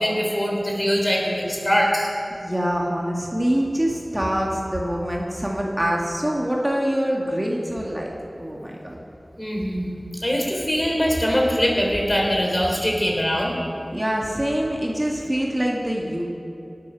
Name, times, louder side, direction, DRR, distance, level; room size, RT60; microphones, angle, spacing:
voice 1, 0.0-2.1 9.4-9.9 10.2-13.5, equal, 25° left, -1 dB, 3.3 m, -22 dB
voice 2, 2.4-8.1 8.4-8.9 13.9-16.2, equal, 20° right, -2 dB, 1.7 m, -25 dB
19.0 x 7.9 x 6.2 m, 2.9 s
wide cardioid pair, 55°, 0 cm